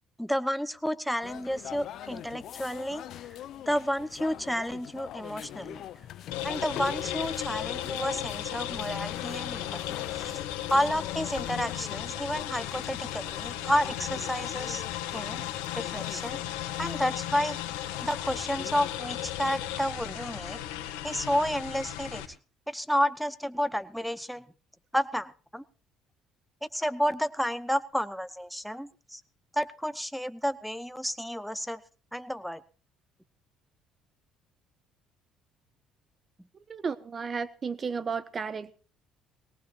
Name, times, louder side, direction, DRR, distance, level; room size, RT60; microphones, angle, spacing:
voice 1, 0.2-3.0 3.7-5.8 6.4-10.3 10.7-14.8 15.1-15.4 15.7-16.4 16.8-17.6 18.0-20.6 21.0-22.2 22.7-24.4 24.9-25.6 26.7-29.2 29.5-31.8 32.1-32.6, equal, ahead, 1.0 m, -31 dB
sound 1, 1.2-19.0, left 11 dB, 65° left, 0.9 m, -43 dB
sound 2, 6.3-22.2, left 12 dB, 85° left, 1.8 m, -35 dB
voice 2, 36.7-38.7, right 5 dB, 40° right, 1.2 m, -33 dB
19.5 x 18.5 x 2.6 m
supercardioid pair, 70°, 0 cm